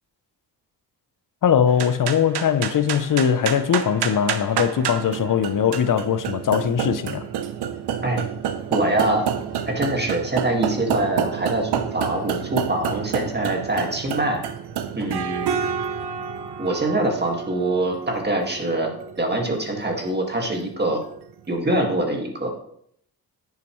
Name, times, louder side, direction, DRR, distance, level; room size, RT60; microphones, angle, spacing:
voice 1, 1.4-7.2, left 8 dB, 55° left, 0.7 m, -21 dB
sound 1, 1.7-21.2, right 8 dB, 80° right, 0.8 m, -29 dB
voice 2, 8.7-9.3 9.7-14.4 15.0-15.5 16.6-18.9 19.2-21.0 21.5-22.5, right 1 dB, 25° right, 2.0 m, -24 dB
9.6 x 7.3 x 3.2 m
cardioid pair, 65°, 39 cm